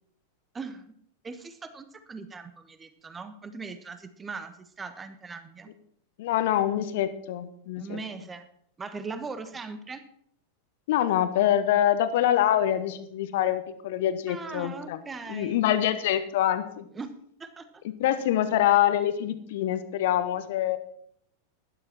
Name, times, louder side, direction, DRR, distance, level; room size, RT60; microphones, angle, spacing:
voice 1, 0.5-0.9 1.2-5.7 7.8-8.5 8.8-10.0 14.3-15.6 16.9-17.1 17.4-17.8, right 4 dB, 15° right, 11 dB, 1.2 m, -39 dB
voice 2, 6.2-8.0 10.9-15.0 15.3-16.9 17.8-20.8, left 11 dB, 55° left, 12 dB, 1.1 m, -25 dB
12.0 x 11.5 x 4.4 m, 0.68 s
figure-of-eight pair, 90°, 0 cm